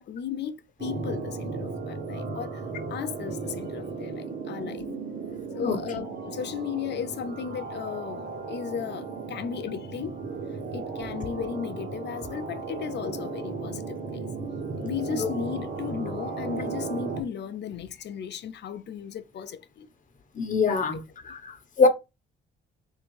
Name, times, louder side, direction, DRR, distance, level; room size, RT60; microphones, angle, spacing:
voice 1, 0.0-2.6 2.9-4.9 5.5-10.2 10.7-14.3 14.8-19.9 20.9-21.0, left 8 dB, 60° left, 0.7 m, -35 dB
sound 1, 0.8-17.2, right 4 dB, 50° right, 1.4 m, -35 dB
voice 2, 20.3-21.0 21.2-21.9, left 4 dB, 40° left, 1.0 m, -24 dB
3.7 x 2.6 x 4.7 m
cardioid pair, 90°, 20 cm